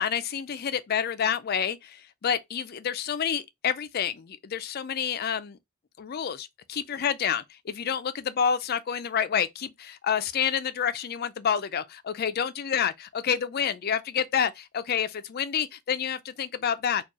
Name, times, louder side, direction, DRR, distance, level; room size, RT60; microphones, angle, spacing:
voice 1, 0.0-5.6 6.0-12.9 13.2-17.0, left 7 dB, 45° left, 0.4 m, -28 dB
4.4 x 2.3 x 2.9 m
head